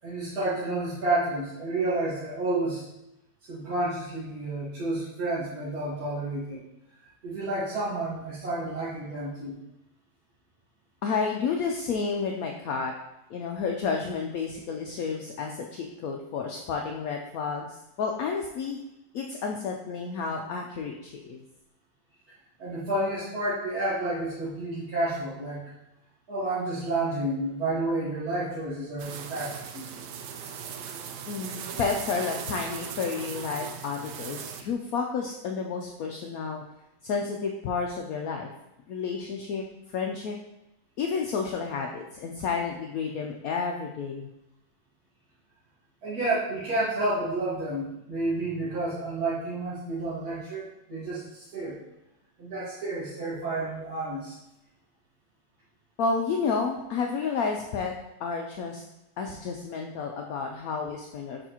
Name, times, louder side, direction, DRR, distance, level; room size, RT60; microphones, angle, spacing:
voice 1, 0.0-2.8 3.5-6.6 7.2-9.6 22.6-25.6 26.3-29.8 46.0-51.8 52.4-54.4, right 2 dB, 60° right, -11 dB, 2.0 m, -30 dB
voice 2, 11.0-12.9 13.3-18.8 19.1-21.4 31.3-36.6 37.0-38.5 38.9-40.4 41.0-44.3 56.0-57.9 58.2-58.8 59.2-61.5, left 5 dB, 70° left, 2 dB, 0.9 m, -31 dB
sound 1, 29.0-34.6, right 7 dB, 85° right, 1.2 m, -38 dB
6.7 x 4.9 x 2.9 m, 0.91 s
omnidirectional pair, 1.8 m